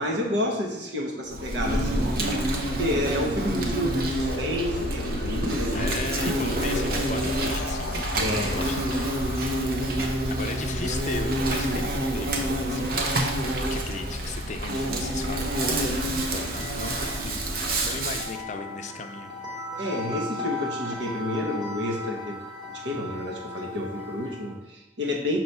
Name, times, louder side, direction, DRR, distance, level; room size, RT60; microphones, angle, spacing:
voice 1, 0.0-6.0 8.1-8.8 19.8-22.4 22.7-25.4, left 1 dB, 85° right, 0 dB, 1.1 m, -30 dB
Insect, 1.3-18.3, right 1 dB, 55° right, 0.8 m, -27 dB
Wind, 4.2-9.7, left 3 dB, 85° left, 0.6 m, -36 dB
voice 2, 5.7-8.0 8.4-9.1 9.8-13.4 13.7-19.3, left 4 dB, 45° left, 6 dB, 0.5 m, -37 dB
sound 1, 15.2-24.6, left 2 dB, 30° right, 0.9 m, -38 dB
5.8 x 3.1 x 5.4 m, 0.98 s
head